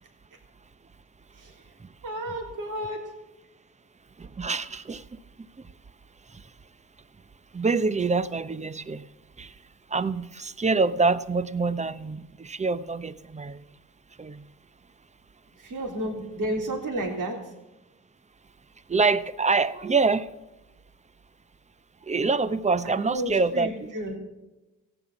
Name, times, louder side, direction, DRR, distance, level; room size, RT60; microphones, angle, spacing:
voice 1, 2.0-3.0 15.6-17.4 22.8-24.2, right 1 dB, 55° right, 1 dB, 3.5 m, -32 dB
voice 2, 4.2-5.2 5.6-5.7 6.3-6.4 7.5-9.1 9.4-9.5 9.9-13.6 14.2-14.4 18.9-20.3 22.1-23.9, right 4 dB, 20° right, 16 dB, 0.8 m, -26 dB
15.5 x 9.0 x 7.2 m, 1.0 s
hypercardioid pair, 55°, 36 cm